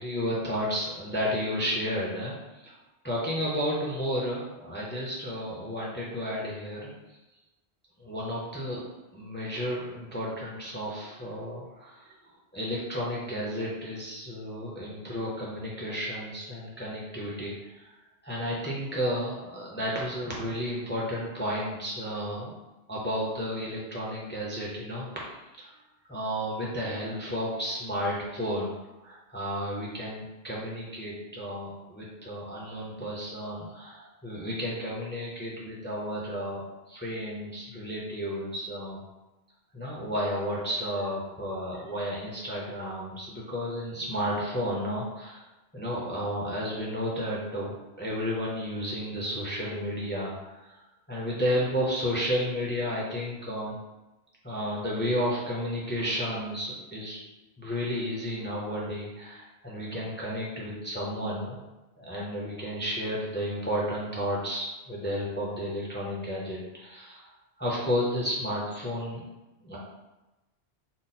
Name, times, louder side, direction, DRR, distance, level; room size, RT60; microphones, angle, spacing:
voice 1, 0.0-2.3 3.0-6.9 8.0-8.8 9.1-12.0 12.5-17.5 18.2-22.5 22.9-25.1 25.6-25.7 26.1-28.7 29.0-39.0 39.7-45.4 45.7-50.6 51.1-53.8 54.4-57.2 57.6-61.6 62.0-67.2 67.6-69.2 69.6-69.8, equal, 15° left, -5 dB, 0.5 m, -32 dB
3.8 x 2.0 x 4.1 m, 1.0 s
omnidirectional pair, 1.1 m